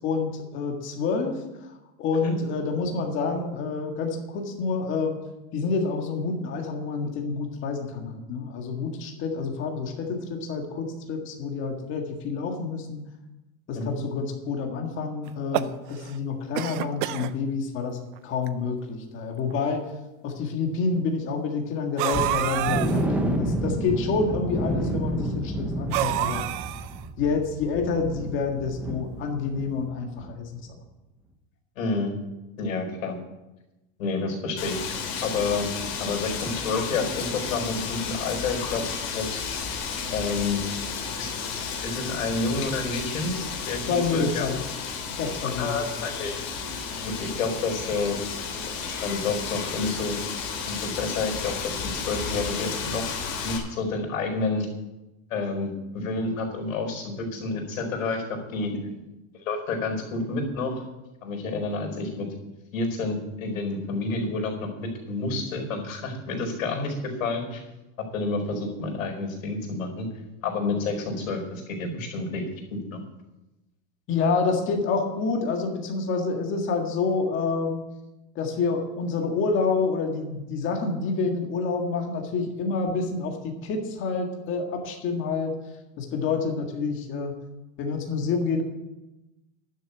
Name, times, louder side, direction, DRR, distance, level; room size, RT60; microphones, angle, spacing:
voice 1, 0.0-1.7 2.0-5.2 5.5-13.1 13.7-18.0 18.2-19.9 20.2-26.4 27.2-30.6 43.9-44.6 45.1-45.8 74.1-77.8 78.4-85.6 86.0-87.4 87.8-88.6, left 4 dB, 30° left, 2 dB, 1.9 m, -28 dB
sound 1, 15.3-16.2 16.5-17.3 18.1-18.2 18.5-18.6 19.5-19.6 22.0-23.0 25.9-27.0, right 14 dB, 40° right, 0.5 m, -28 dB
sound 2, 22.1-29.9 30.2-30.3 30.8-30.9, right 1 dB, 5° right, 0.7 m, -30 dB
voice 2, 31.8-32.1 32.6-33.2 34.0-34.8 35.2-35.7 36.0-39.4 40.1-40.6 41.2-41.3 41.8-43.3 43.7-44.5 45.6-46.3 47.0-48.2 48.7-50.2 50.7-53.1 53.4-54.7 55.3-58.7 59.3-60.8 61.2-62.3 62.7-67.6 68.1-70.1 70.4-72.4 72.7-73.0, left 3 dB, 90° left, 2 dB, 4.6 m, -29 dB
Wind, 34.6-53.6, left 5 dB, 50° left, 3.3 m, -32 dB
11.5 x 6.6 x 8.4 m, 1.0 s
supercardioid pair, 160°, 40 cm